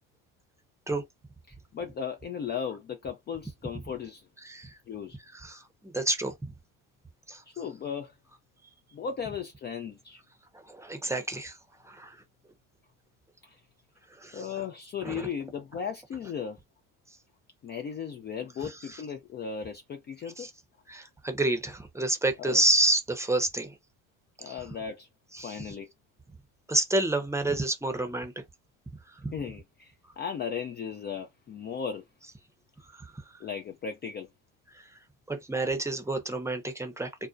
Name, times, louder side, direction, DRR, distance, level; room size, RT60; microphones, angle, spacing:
voice 1, 1.5-4.3 4.9-5.2 7.5-8.1 8.9-10.2 13.4-13.6 14.3-16.6 17.6-20.5 22.4-22.6 24.4-25.1 25.4-25.9 29.3-32.0 33.4-34.3, left 7 dB, 30° left, 0.4 m, -36 dB
voice 2, 5.3-6.3 7.3-7.4 10.7-11.6 11.9-12.2 14.2-14.4 15.0-15.3 20.4-20.5 20.9-23.7 24.5-24.6 25.3-25.6 26.7-28.3 29.2-29.3 35.3-37.1, right 2 dB, 5° right, 0.7 m, -29 dB
2.6 x 2.1 x 2.3 m
hypercardioid pair, 75°, 38 cm